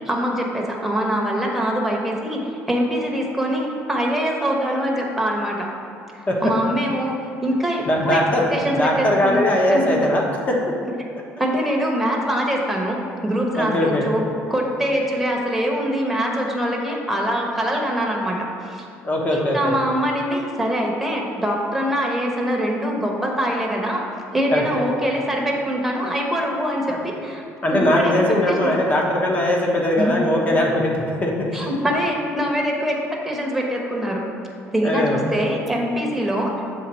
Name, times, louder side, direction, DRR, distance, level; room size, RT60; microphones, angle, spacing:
voice 1, 0.1-5.7 6.1-8.2 8.5-9.4 9.7-10.0 11.4-14.2 14.5-18.8 19.3-24.0 24.3-28.1 28.5-28.7 30.0-30.2 30.5-30.6 31.5-34.2 34.7-36.5, equal, 5° right, -1 dB, 1.0 m, -23 dB
voice 2, 7.9-8.4 8.7-10.5 13.6-14.1 19.0-19.7 24.5-24.6 26.9-27.0 27.6-31.6 34.8-35.2, left 1 dB, 30° left, -1 dB, 1.1 m, -20 dB
7.4 x 3.7 x 4.3 m, 2.5 s
cardioid pair, 120°, 5 cm